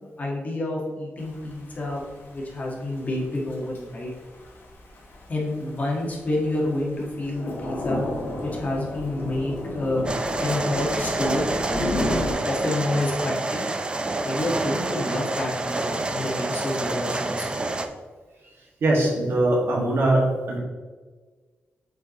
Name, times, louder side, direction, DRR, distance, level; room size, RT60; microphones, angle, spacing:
voice 1, 0.0-4.1 5.3-8.0 8.4-10.1 10.4-11.4 12.2-13.6 14.2-17.6, left 1 dB, 40° left, -3 dB, 1.5 m, -28 dB
Thunder / Rain, 1.2-12.3, left 1 dB, 60° left, 1.8 m, -33 dB
sound 1, 10.0-17.9, right 2 dB, 25° right, 0.4 m, -28 dB
voice 2, 18.8-20.6, right 1 dB, 75° right, -3 dB, 1.8 m, -21 dB
7.7 x 4.6 x 3.0 m, 1.4 s
wide cardioid pair, 135°, 4 cm